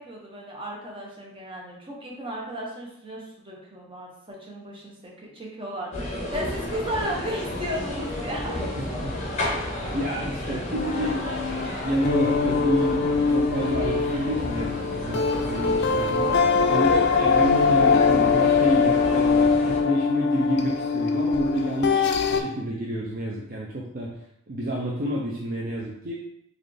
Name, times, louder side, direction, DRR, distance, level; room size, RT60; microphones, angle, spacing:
voice 1, 0.0-8.6, equal, 25° right, -3 dB, 0.8 m, -34 dB
sound 1, 5.9-19.8, left 1 dB, 35° left, 0.7 m, -32 dB
voice 2, 8.8-9.1 9.9-11.3 11.7-13.0 13.3-16.4 16.7-24.1 24.5-26.2, equal, 45° right, -3 dB, 0.5 m, -29 dB
sound 2, 10.7-22.4, left 5 dB, 55° left, 0.3 m, -22 dB
3.9 x 2.4 x 3.3 m, 0.76 s
head